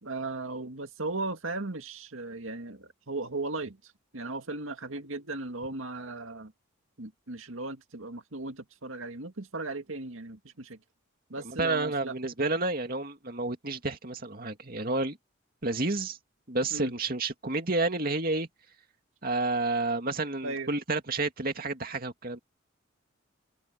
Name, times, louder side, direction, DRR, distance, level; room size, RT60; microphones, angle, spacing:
voice 1, 0.0-6.5 7.0-10.8 11.3-12.2 16.7-16.9 20.4-20.8, right 2 dB, 85° right, 2.1 m, -37 dB
voice 2, 11.4-15.2 15.6-16.2 16.5-18.5 19.2-22.4, right 2 dB, 45° right, 2.4 m, -30 dB
head